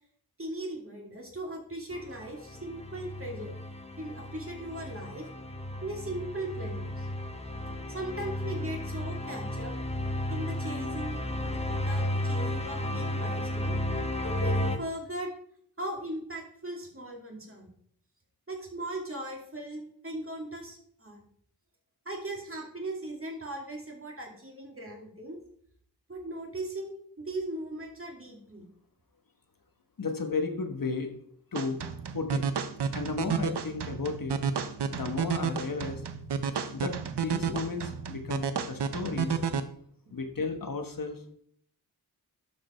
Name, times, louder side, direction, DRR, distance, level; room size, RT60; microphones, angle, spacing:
voice 1, 0.4-3.5 4.0-5.3 5.8-7.1 7.9-9.7 10.3-13.7 14.2-15.3 15.8-17.7 18.5-21.2 22.1-25.4 26.1-28.6, right 1 dB, 30° right, 0 dB, 2.4 m, -38 dB
sound 1, 1.9-14.8, left 1 dB, 15° left, 1.0 m, -33 dB
voice 2, 30.0-31.2 31.5-31.8 32.1-32.4 32.9-34.4 34.9-36.0 36.7-39.4 40.1-41.3, left 4 dB, 55° left, 5 dB, 1.2 m, -34 dB
sound 2, 31.6-39.6, right 6 dB, 80° right, 0.8 m, -31 dB
12.0 x 5.1 x 4.4 m, 0.64 s
wide cardioid pair, 90°, 41 cm